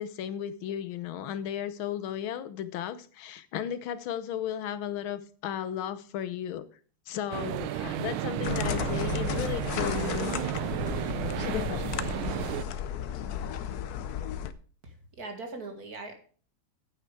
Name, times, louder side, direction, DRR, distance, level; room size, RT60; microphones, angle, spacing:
voice 1, 0.0-6.6 7.1-10.4, left 10 dB, 80° left, 14 dB, 1.6 m, -35 dB
sound 1, 7.3-12.6, right 14 dB, 90° right, 1.4 m, -32 dB
sound 2, 8.4-14.5, left 10 dB, 65° left, 1.0 m, -33 dB
voice 2, 14.8-16.1, right 3 dB, 50° right, 5 dB, 2.2 m, -40 dB
9.2 x 8.8 x 4.8 m, 0.41 s
omnidirectional pair, 2.2 m